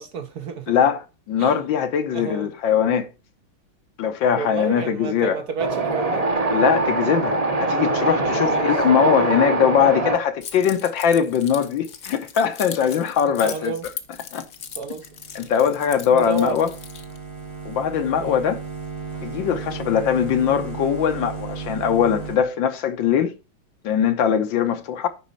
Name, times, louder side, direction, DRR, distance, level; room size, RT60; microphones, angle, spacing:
voice 1, 0.0-0.7 1.4-1.6 2.1-2.5 4.4-6.3 8.4-8.8 13.4-13.9 14.8-15.1 16.1-16.6 18.2-18.4, right 4 dB, 60° right, 1.2 m, -30 dB
voice 2, 0.7-3.1 4.0-5.4 6.5-13.8 14.3-14.4 15.3-16.7 17.6-18.6 19.2-23.3 23.8-25.1, left 8 dB, 70° left, 1.6 m, -21 dB
Wind, 5.6-10.2, right 2 dB, 25° right, 0.8 m, -22 dB
Keys jangling, 10.4-17.2, left 7 dB, 50° left, 1.0 m, -39 dB
sound 1, 14.7-22.4, right 5 dB, 85° right, 3.9 m, -35 dB
10.5 x 4.2 x 5.6 m
omnidirectional pair, 2.3 m